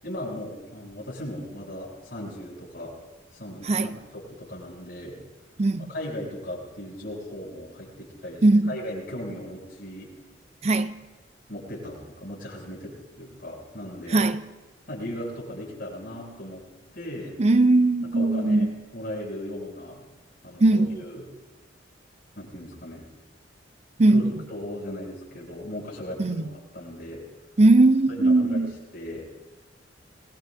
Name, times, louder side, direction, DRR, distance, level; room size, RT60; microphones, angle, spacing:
voice 1, 0.0-3.0 3.3-5.2 5.9-10.1 11.5-14.2 14.9-16.6 16.9-17.4 18.0-20.0 20.4-21.2 22.4-23.0 24.1-24.2 24.5-27.2 28.1-28.6 28.9-29.3, left 1 dB, 55° left, 7.5 m, -37 dB
voice 2, 3.6-4.0 5.6-5.9 8.4-8.7 10.6-10.9 14.1-14.4 17.4-18.7 20.6-21.0 24.0-24.3 26.2-26.4 27.6-28.7, right 2 dB, 35° right, 0.5 m, -19 dB
25.5 x 20.5 x 2.7 m
head